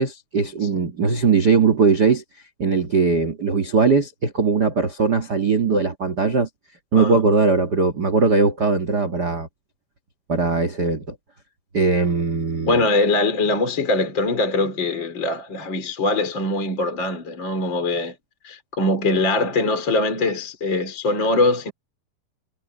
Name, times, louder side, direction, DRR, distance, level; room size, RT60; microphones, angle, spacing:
voice 1, 0.0-2.2 2.6-6.5 6.9-9.5 10.3-11.1 11.7-12.8, right 4 dB, 85° right, 0.9 m, -20 dB
voice 2, 12.7-18.1 18.4-21.7, left 2 dB, 30° left, 4.3 m, -22 dB
omnidirectional pair, 4.7 m